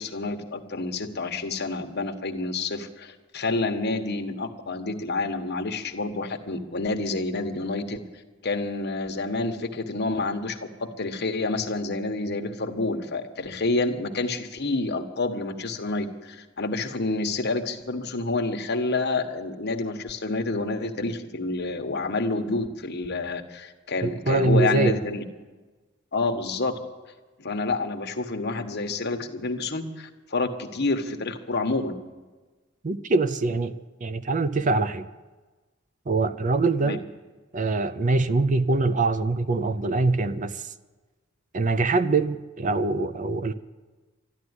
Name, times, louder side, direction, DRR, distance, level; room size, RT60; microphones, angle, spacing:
voice 1, 0.0-8.0 8.4-25.2 26.1-26.8 27.4-31.9 36.8-37.0, left 3 dB, 55° left, 5 dB, 1.2 m, -28 dB
voice 2, 24.0-25.0 32.8-33.8 34.0-35.1 36.1-37.0 37.5-40.7 41.5-43.5, right 3 dB, 40° right, 13 dB, 0.6 m, -23 dB
13.0 x 11.0 x 9.6 m, 1.3 s
head